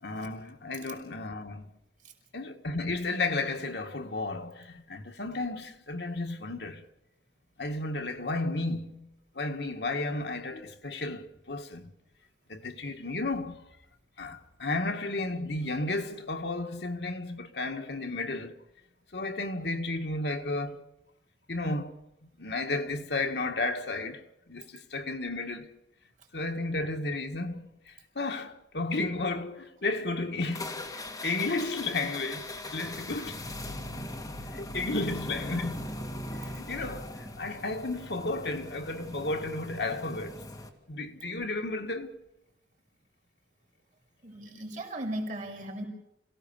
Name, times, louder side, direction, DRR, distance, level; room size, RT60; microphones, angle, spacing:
voice 1, 0.0-1.7 2.3-6.8 7.6-9.1 9.4-11.9 12.5-13.6 14.2-18.6 19.1-20.8 21.5-22.0 22.4-24.2 24.5-25.8 26.3-27.6 28.2-33.4 34.5-35.9 36.3-40.4 40.9-42.1, left 2 dB, 70° left, 1.7 m, -33 dB
sound 1, 30.5-40.7, left 1 dB, 20° left, 2.4 m, -40 dB
voice 2, 44.2-45.9, right 1 dB, 45° right, 5.7 m, -36 dB
27.5 x 17.5 x 7.1 m
head